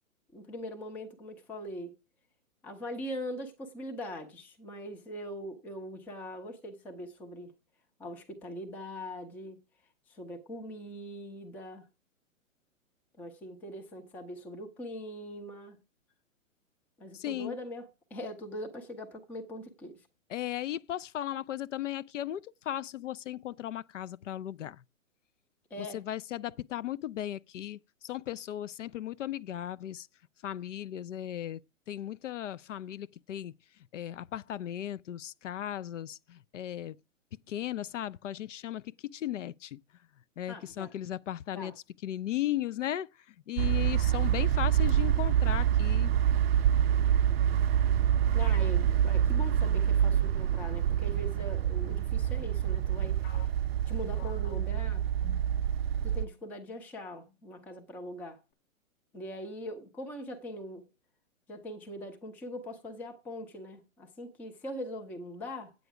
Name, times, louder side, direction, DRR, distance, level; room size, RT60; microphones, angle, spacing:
voice 1, 0.3-1.9 2.6-7.5 8.0-9.6 10.1-11.9 13.2-15.8 17.0-20.1 25.7-26.0 40.5-40.9 41.5-41.7 48.3-53.5 53.9-55.0 56.0-58.4 59.1-60.8 61.5-65.7, equal, 5° left, 0.4 m, -41 dB
voice 2, 17.1-17.6 20.3-24.8 25.8-30.1 30.4-31.6 31.9-33.5 33.9-37.0 37.5-38.8 39.1-39.8 40.4-41.7 42.0-43.1 43.5-46.1, left 12 dB, 65° left, 0.5 m, -36 dB
Car Interior gear downs in windows, 43.6-56.3, right 10 dB, 45° right, 0.5 m, -26 dB
sound 1, 53.2-56.1 56.4-56.6 57.3-57.7, left 6 dB, 35° left, 2.4 m, -52 dB
9.1 x 8.3 x 4.8 m
hypercardioid pair, 125°, 41 cm